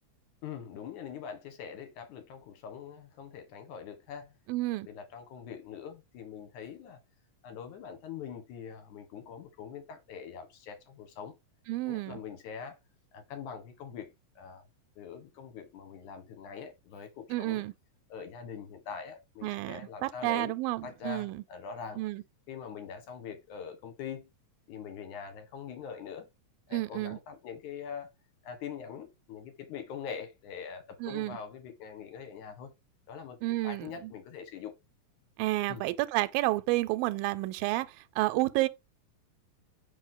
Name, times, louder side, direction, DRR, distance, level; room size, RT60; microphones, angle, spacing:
voice 1, 0.4-4.3 4.8-7.0 7.4-11.3 11.8-12.8 13.1-14.1 14.4-14.6 15.0-17.7 18.1-20.5 20.8-22.0 22.5-24.3 24.7-26.3 26.7-28.1 28.4-32.7 33.1-33.4 33.6-34.7 35.7-35.8, left 7 dB, 65° left, 2.5 m, -43 dB
voice 2, 4.5-4.9 11.7-12.2 17.3-17.7 19.4-21.4 22.0-22.2 26.7-27.2 31.0-31.4 33.4-34.1 35.4-37.9 38.2-38.7, right 19 dB, 85° right, 2.3 m, -30 dB
5.1 x 4.9 x 3.8 m
omnidirectional pair, 4.0 m